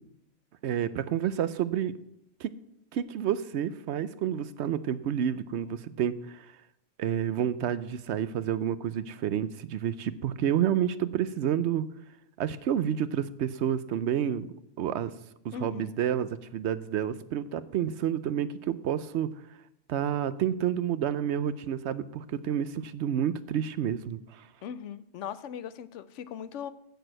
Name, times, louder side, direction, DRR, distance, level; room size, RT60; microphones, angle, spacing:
voice 1, 0.6-1.9 2.4-2.5 2.9-6.5 7.0-11.8 12.4-14.5 14.8-15.1 15.4-19.3 19.9-24.5, right 9 dB, 70° right, 14 dB, 0.8 m, -29 dB
voice 2, 15.5-15.9 24.6-26.7, left 8 dB, 75° left, 15 dB, 0.9 m, -39 dB
8.1 x 6.8 x 7.6 m, 0.79 s
omnidirectional pair, 1.3 m